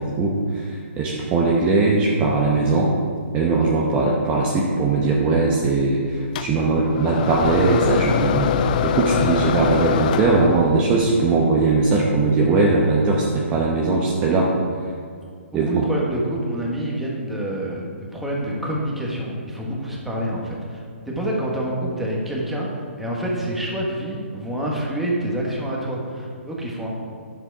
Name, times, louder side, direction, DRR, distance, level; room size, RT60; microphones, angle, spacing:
voice 1, 0.0-2.9 3.3-14.5 15.5-15.8, right 3 dB, 20° right, -3 dB, 0.9 m, -20 dB
sound 1, 6.4-10.8, left 8 dB, 35° left, 0.4 m, -23 dB
voice 2, 15.6-20.8 21.1-26.9, right 1 dB, 5° right, -4 dB, 1.5 m, -27 dB
9.9 x 7.4 x 4.7 m, 2.2 s
hypercardioid pair, 155°, 7 cm